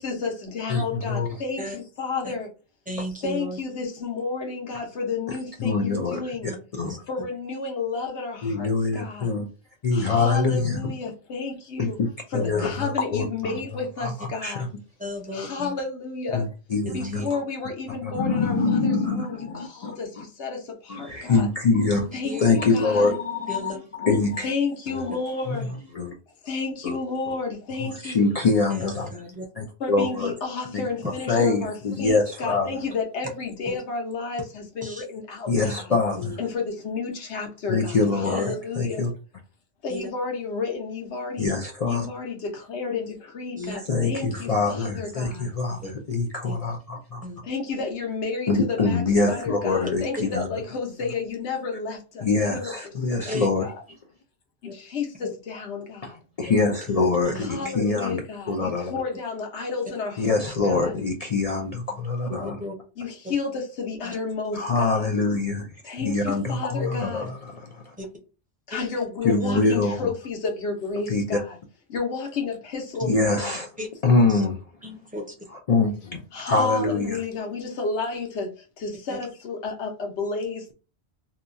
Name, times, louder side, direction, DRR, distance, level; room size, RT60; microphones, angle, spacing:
voice 1, 0.0-2.5 3.0-6.5 7.1-9.3 9.9-12.0 12.3-14.7 15.3-16.5 16.9-21.5 22.1-23.1 24.4-25.7 26.4-28.3 29.8-35.9 36.4-39.1 39.8-41.5 41.9-45.5 47.4-52.7 53.1-53.8 54.6-56.2 57.4-61.0 63.0-65.1 65.8-67.3 68.7-71.6 71.9-73.6 76.3-80.7, left 4 dB, 75° left, 1.1 m, -31 dB
voice 2, 0.7-1.3 5.6-6.2 6.8-7.0 8.4-9.5 9.8-10.8 11.8-12.1 12.4-13.5 14.0-14.1 14.4-14.5 16.3-16.4 16.7-17.2 18.1-19.9 20.9-23.7 24.0-24.5 25.1-25.2 25.5-25.6 25.9-26.1 26.8-27.0 28.0-29.1 29.6-30.3 30.7-30.8 31.3-32.7 35.5-36.4 37.7-39.1 41.4-42.0 43.7-47.2 48.5-50.4 52.2-53.7 56.4-58.2 58.5-58.9 60.2-62.6 64.5-65.7 66.0-67.9 69.2-69.9 71.1-71.2 73.0-73.7 74.0-74.6 75.5-77.2, left 3 dB, 55° left, 0.4 m, -24 dB
voice 3, 2.9-3.6 6.5-6.6 6.8-7.0 9.2-9.3 12.3-12.6 15.0-15.7 16.9-17.3 22.2-22.4 23.5-23.8 28.7-29.5 34.8-35.0 36.1-36.4 38.2-38.5 39.9-40.1 43.6-43.8 45.8-45.9 46.4-46.6 47.2-47.4 53.3-53.5 54.6-54.7 55.2-55.3 56.5-57.8 60.9-61.0 62.4-62.7 64.0-64.1 66.8-66.9 68.0-68.1 68.7-68.8 69.4-69.5 73.8-73.9 74.2-74.4 74.8-75.3 79.1-79.2, left 1 dB, 10° right, 0.5 m, -35 dB
2.8 x 2.3 x 2.5 m
omnidirectional pair, 1.1 m